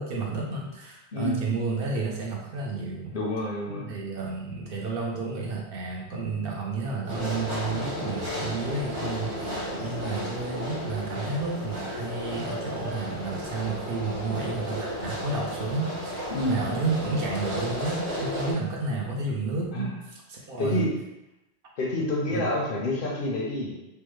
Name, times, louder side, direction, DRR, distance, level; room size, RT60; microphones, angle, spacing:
voice 1, 0.0-3.1 3.7-20.9 22.3-22.4, right 3 dB, 60° right, -2 dB, 0.7 m, -31 dB
voice 2, 1.1-1.4 3.1-3.9 16.3-16.6 19.7-19.9 20.6-20.9 21.8-23.8, left 1 dB, 60° left, -2 dB, 0.7 m, -28 dB
sound 1, 7.1-18.5, equal, 90° right, 1.5 m, -33 dB
3.3 x 2.1 x 3.1 m, 0.91 s
omnidirectional pair, 1.1 m